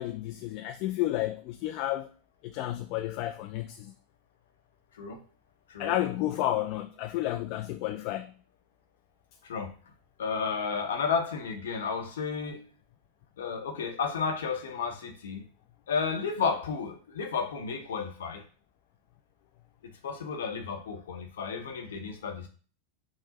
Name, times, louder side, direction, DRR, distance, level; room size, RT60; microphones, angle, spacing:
voice 1, 0.0-2.1 2.4-3.9 5.8-8.3, left 14 dB, 55° left, 0.3 m, -31 dB
voice 2, 10.2-12.7 13.4-15.4 15.9-18.4 20.0-22.5, left 5 dB, 80° left, 0.8 m, -32 dB
6.2 x 2.1 x 2.8 m
hypercardioid pair, 95°, 0 cm